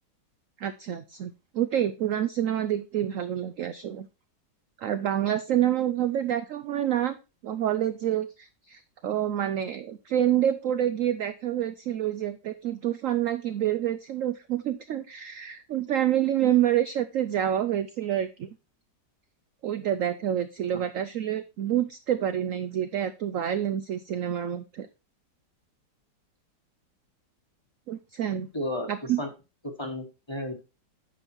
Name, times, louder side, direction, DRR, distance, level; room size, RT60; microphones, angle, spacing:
voice 1, 0.6-4.1 4.8-7.2 7.4-18.5 19.6-24.9 27.9-28.5 28.9-29.2, right 11 dB, 70° right, 11 dB, 0.8 m, -27 dB
voice 2, 28.5-29.3 29.8-30.5, left 1 dB, 15° left, 4 dB, 1.2 m, -33 dB
9.0 x 5.5 x 4.4 m, 0.28 s
omnidirectional pair, 1.9 m